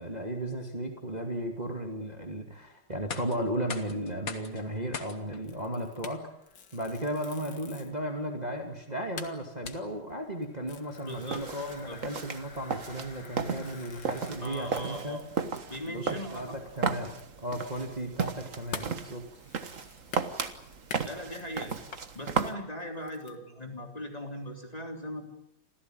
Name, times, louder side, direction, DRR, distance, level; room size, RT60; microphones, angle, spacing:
voice 1, 0.0-6.3 6.7-15.2 15.9-19.2, right 1 dB, 20° right, 3 dB, 2.5 m, -35 dB
sound 1, 2.9-14.8, left 5 dB, 45° left, 2.1 m, -47 dB
sound 2, 5.4-8.0 8.5-8.6 8.8-8.9 9.2-16.0 16.3-16.4 16.8-22.1 22.6-23.4, left 5 dB, 60° left, 2.5 m, -47 dB
voice 2, 11.1-11.4 11.9-12.0 14.4-15.3 15.7-16.6 21.0-21.7 22.1-25.3, left 1 dB, 20° left, 3 dB, 3.6 m, -39 dB
sound 3, 11.1-22.5, right 5 dB, 40° right, 1.7 m, -35 dB
27.0 x 16.0 x 9.5 m, 0.76 s
omnidirectional pair, 2.2 m